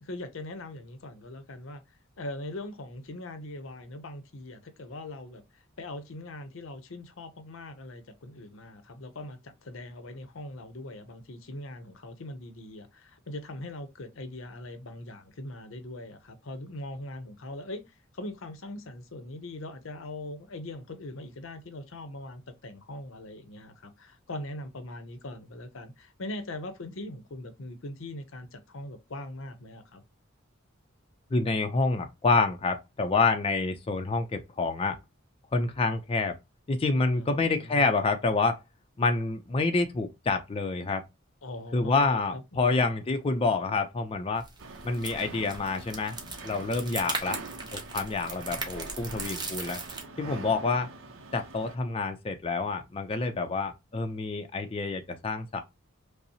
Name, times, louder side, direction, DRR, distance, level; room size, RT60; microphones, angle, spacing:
voice 1, 0.0-1.8 2.2-17.8 18.1-30.0 37.1-37.9 41.4-42.9, left 1 dB, 70° left, 0.7 m, -41 dB
voice 2, 31.3-35.0 35.5-36.4 36.7-38.6 39.0-41.0 41.7-44.4 44.8-46.2 46.4-47.4 47.7-49.8 50.2-50.9 51.3-55.6, left 3 dB, 30° left, 0.4 m, -27 dB
sound 1, 44.3-50.0, right 3 dB, 20° right, 0.9 m, -38 dB
sound 2, 44.6-51.8, right 3 dB, 75° right, 0.6 m, -44 dB
5.3 x 2.0 x 2.7 m
head